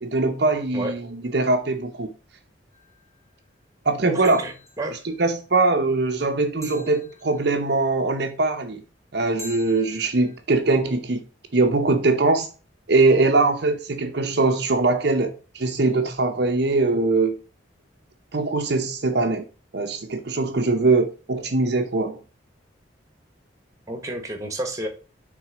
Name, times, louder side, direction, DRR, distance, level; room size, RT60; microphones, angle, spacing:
voice 1, 0.0-2.1 3.8-4.4 5.0-8.8 9.1-11.2 11.5-12.5 12.9-17.3 18.3-19.4 19.7-22.2, right 3 dB, 60° right, 0.8 m, -22 dB
sound 1, 2.7-3.1 4.2-5.0 6.6-7.7 9.4-10.4, equal, 15° left, 1.9 m, -44 dB
voice 2, 4.0-5.0 23.9-24.9, right 1 dB, 15° right, 1.3 m, -30 dB
6.2 x 3.8 x 5.0 m
head